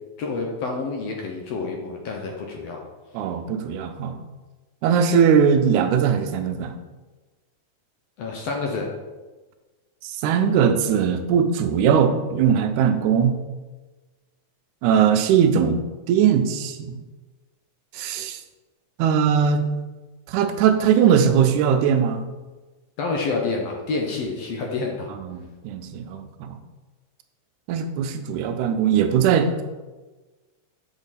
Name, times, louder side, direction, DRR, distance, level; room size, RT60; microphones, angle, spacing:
voice 1, 0.2-2.8 8.2-8.9 23.0-25.1, left 3 dB, 70° left, 1 dB, 1.7 m, -28 dB
voice 2, 3.1-4.2 4.8-6.7 10.0-13.4 14.8-15.8 16.1-17.0 17.9-18.4 19.0-19.6 20.3-22.2 25.2-26.6 27.7-29.5, right 7 dB, 85° right, 8 dB, 2.0 m, -20 dB
7.1 x 5.2 x 4.1 m, 1.2 s
omnidirectional pair, 3.5 m